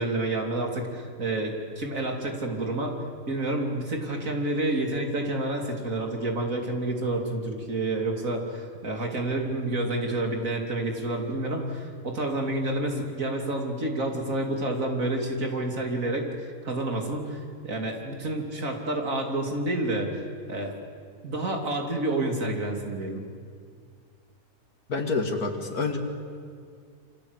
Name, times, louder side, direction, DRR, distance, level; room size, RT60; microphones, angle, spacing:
voice 1, 0.0-3.0 3.3-20.7 21.2-23.2, right 2 dB, 60° right, 2 dB, 3.5 m, -29 dB
voice 2, 24.9-26.0, left 3 dB, 80° left, 3 dB, 3.0 m, -27 dB
28.5 x 25.5 x 8.3 m, 2.2 s
omnidirectional pair, 1.6 m